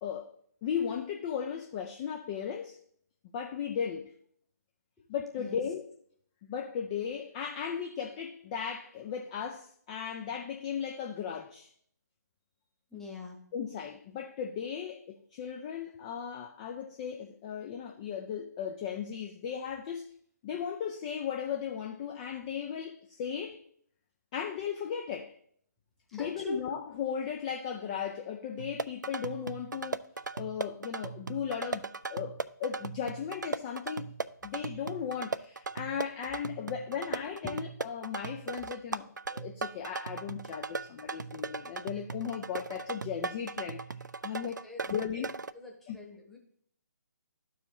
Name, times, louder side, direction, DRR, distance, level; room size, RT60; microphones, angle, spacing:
voice 1, 0.0-0.3 0.6-2.8 3.3-4.1 5.1-5.9 6.4-11.7 13.5-20.1 20.4-23.6 24.3-25.4 26.1-30.0 30.3-34.1 34.4-43.8 44.2-45.3 45.9-46.0, left 8 dB, 25° left, 0.4 m, -36 dB
voice 2, 12.9-13.4 26.1-26.6 37.4-37.5 44.6-45.3 45.5-46.4, left 2 dB, 5° left, 1.1 m, -42 dB
sound 1, 28.6-45.5, right 4 dB, 80° right, 0.4 m, -38 dB
12.5 x 4.7 x 3.0 m
figure-of-eight pair, 140°, 10 cm